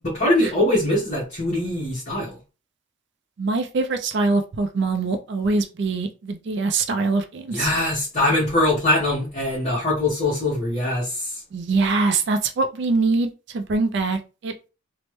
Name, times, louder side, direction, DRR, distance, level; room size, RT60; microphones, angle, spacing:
voice 1, 0.0-2.3 7.5-11.4, left 1 dB, 30° left, -7 dB, 1.0 m, -22 dB
voice 2, 3.4-7.7 11.5-14.5, right 3 dB, 55° right, 7 dB, 0.3 m, -23 dB
3.1 x 2.0 x 3.1 m, 0.31 s
head